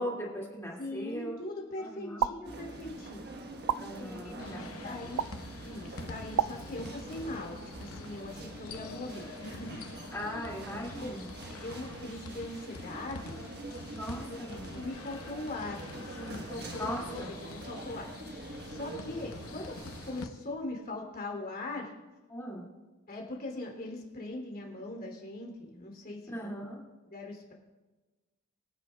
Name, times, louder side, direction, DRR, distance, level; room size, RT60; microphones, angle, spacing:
voice 1, 0.0-1.4 1.8-2.3 3.8-5.2 10.1-11.3 13.9-14.8 16.8-17.3 22.3-22.6 26.3-26.8, equal, 15° left, -3 dB, 2.1 m, -39 dB
voice 2, 0.8-3.3 3.9-5.2 5.6-10.0 10.9-11.1 11.5-13.4 14.3-18.1 18.6-21.9 23.1-26.5 27.1-27.5, left 2 dB, 45° left, 1 dB, 2.7 m, -41 dB
sound 1, 2.2-2.3 3.7-3.8 5.2-5.3 6.4-6.5, right 9 dB, 80° right, 0.3 m, -27 dB
sound 2, 2.4-20.2, right 2 dB, 50° right, 1.2 m, -45 dB
sound 3, 4.4-20.3, left 3 dB, 90° left, 0.8 m, -46 dB
23.5 x 9.8 x 2.2 m, 1.2 s
head